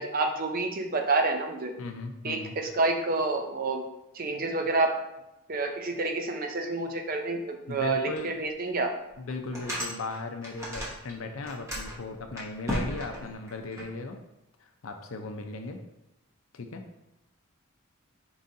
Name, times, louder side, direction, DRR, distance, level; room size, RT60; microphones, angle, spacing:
voice 1, 0.0-1.7 2.2-3.8 4.1-4.9 5.5-8.9, right 3 dB, 45° right, 4 dB, 0.5 m, -28 dB
voice 2, 1.8-2.6 7.7-8.3 9.2-14.2 14.8-15.8 16.5-16.8, left 3 dB, 70° left, 5 dB, 0.5 m, -37 dB
sound 1, 8.2-8.3 8.7-8.8 9.3-11.1 11.4-13.8, equal, 15° right, 1.0 m, -35 dB
4.7 x 3.8 x 2.7 m, 0.92 s
head